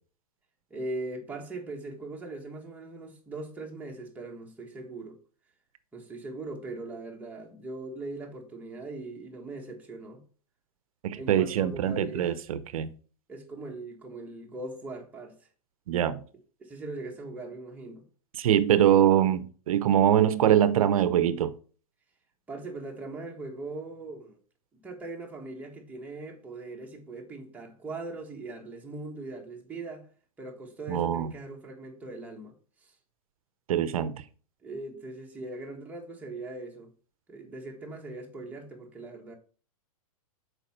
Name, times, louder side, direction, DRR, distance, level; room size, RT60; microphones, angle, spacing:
voice 1, 0.7-5.1 5.9-10.2 11.1-12.4 13.3-15.3 16.6-18.1 22.5-24.4 24.8-30.1 30.4-32.5 32.8-32.9 34.6-36.9 37.3-39.3, right 2 dB, 10° right, 1.4 m, -40 dB
voice 2, 11.0-12.9 15.9-16.2 18.3-21.5 30.9-31.3 33.7-34.2, right 10 dB, 70° right, 0.7 m, -23 dB
6.5 x 4.8 x 4.3 m
hypercardioid pair, 140°, 18 cm